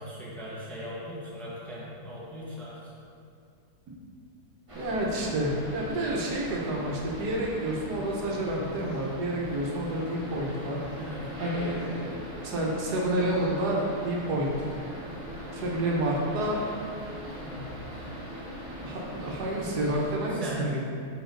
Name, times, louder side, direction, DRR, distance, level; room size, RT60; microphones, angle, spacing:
voice 1, 0.0-2.8 8.4-8.7 11.0-11.2 17.4-17.6 20.3-20.7, equal, ahead, -8 dB, 1.1 m, -39 dB
sound 1, 4.7-20.2, equal, 20° right, 1.1 m, -40 dB
voice 2, 4.7-10.8 11.4-12.2 12.4-14.7 15.5-16.7 18.8-20.8, right 1 dB, 85° right, -2 dB, 1.5 m, -29 dB
5.7 x 5.0 x 3.8 m, 2.5 s
omnidirectional pair, 1.7 m